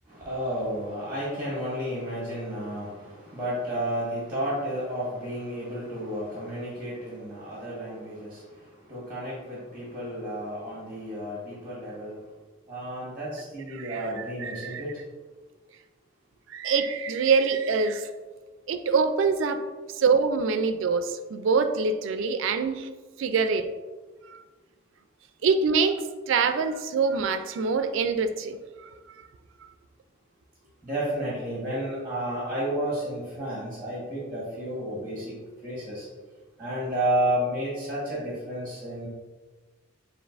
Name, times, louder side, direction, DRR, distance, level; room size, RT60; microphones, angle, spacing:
voice 1, 0.1-12.2 12.7-15.0 30.8-35.4 35.6-36.1 36.6-39.1, right 1 dB, 10° right, -7 dB, 1.2 m, -32 dB
voice 2, 13.7-14.1 14.4-14.8 16.5-18.1 18.7-19.7 20.0-22.9 23.2-23.7 25.4-26.0 26.3-28.6, right 5 dB, 70° right, 9 dB, 0.3 m, -24 dB
7.0 x 2.5 x 2.4 m, 1.3 s
head